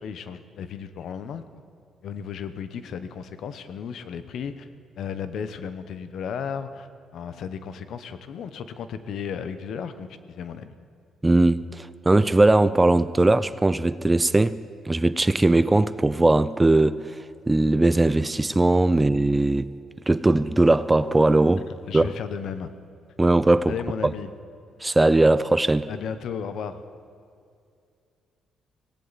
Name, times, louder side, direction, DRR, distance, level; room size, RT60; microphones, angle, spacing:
voice 1, 0.0-1.4 2.0-4.7 5.0-10.7 21.9-22.7 23.7-24.3 25.9-26.8, left 7 dB, 70° left, 0.9 m, -34 dB
voice 2, 11.2-14.6 14.9-17.2 17.5-19.7 20.1-21.7 21.9-22.1 23.2-23.7 24.0-24.1 24.8-25.9, right 2 dB, 15° right, 0.4 m, -19 dB
17.5 x 17.0 x 4.1 m
cardioid pair, 90°, 0 cm